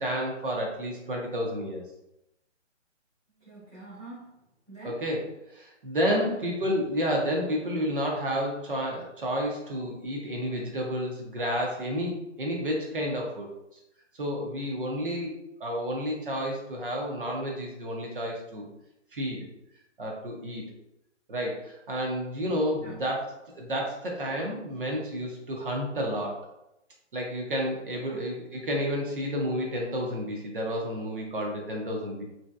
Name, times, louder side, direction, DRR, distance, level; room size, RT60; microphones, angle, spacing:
voice 1, 0.0-1.8 4.8-5.2 5.5-13.8 14.2-15.3 15.6-18.7 19.1-19.5 20.0-20.6 21.3-23.2 23.6-26.4 27.1-32.2, equal, 45° right, -1 dB, 0.6 m, -30 dB
voice 2, 3.4-4.3 4.7-5.0 6.2-6.4 22.8-23.1 28.0-28.2, right 2 dB, 5° right, -24 dB, 0.6 m, -45 dB
3.1 x 2.7 x 2.2 m, 0.86 s
hypercardioid pair, 170°, 36 cm